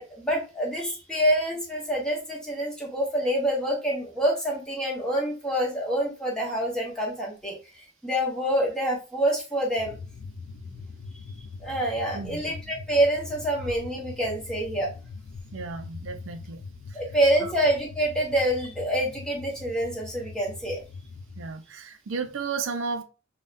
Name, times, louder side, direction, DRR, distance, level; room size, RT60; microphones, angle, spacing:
voice 1, 0.0-9.9 10.6-10.8 11.6-14.9 16.9-20.8, right 1 dB, 5° left, 1.3 m, -26 dB
sound 1, 9.8-21.5, left 4 dB, 70° left, 0.4 m, -42 dB
voice 2, 15.5-16.6 16.9-17.0 17.4-17.5 21.4-23.0, right 5 dB, 80° right, 0.5 m, -33 dB
5.4 x 2.2 x 2.5 m
head